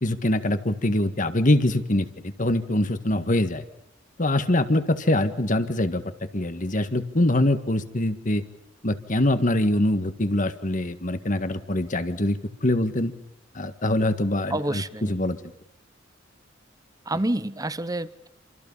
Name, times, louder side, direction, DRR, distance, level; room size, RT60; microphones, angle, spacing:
voice 1, 0.0-3.6 4.2-6.0 6.3-8.4 8.8-13.1 13.6-15.4, left 1 dB, 45° left, 10 dB, 1.8 m, -24 dB
voice 2, 14.5-15.1 17.1-18.3, right 1 dB, 20° right, 15 dB, 1.0 m, -28 dB
28.0 x 27.0 x 5.6 m, 0.83 s
head